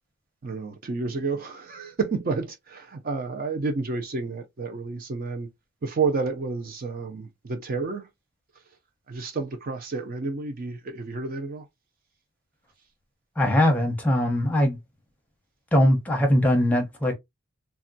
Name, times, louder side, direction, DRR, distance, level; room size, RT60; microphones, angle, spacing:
voice 1, 0.4-5.5 5.8-8.1 9.1-11.7, right 4 dB, 40° right, 0.4 m, -30 dB
voice 2, 13.4-14.8 15.7-17.1, left 1 dB, 5° left, 0.7 m, -21 dB
3.4 x 2.1 x 2.6 m
head